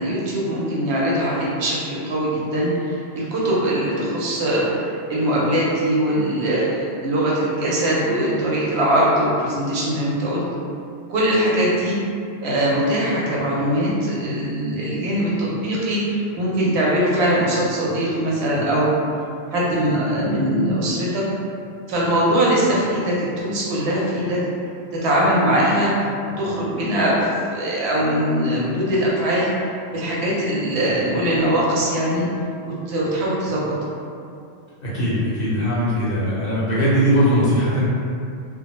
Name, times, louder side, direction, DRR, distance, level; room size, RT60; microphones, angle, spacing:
voice 1, 0.0-10.4 11.1-12.0 12.4-18.9 19.5-21.2 21.9-24.4 24.9-25.9 26.4-29.5 29.9-32.3 32.6-33.6, right 1 dB, 70° right, -6 dB, 0.8 m, -21 dB
voice 2, 34.8-37.8, equal, 60° left, -8 dB, 0.7 m, -20 dB
2.1 x 2.0 x 2.9 m, 2.5 s
omnidirectional pair, 1.2 m